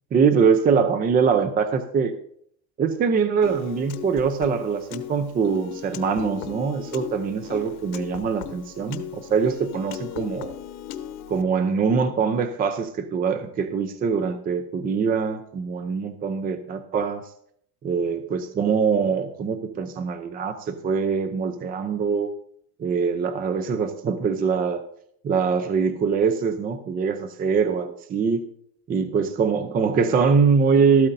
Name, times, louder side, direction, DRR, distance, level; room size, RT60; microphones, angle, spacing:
voice 1, 0.1-2.1 2.8-10.6 11.3-17.2 17.8-22.3 22.8-24.8 25.2-28.4 28.9-31.1, right 5 dB, 20° right, 9 dB, 0.6 m, -23 dB
Piano, 3.4-11.4, left 10 dB, 85° left, 1.0 m, -37 dB
13.5 x 12.5 x 2.6 m, 0.67 s
supercardioid pair, 140°, 42 cm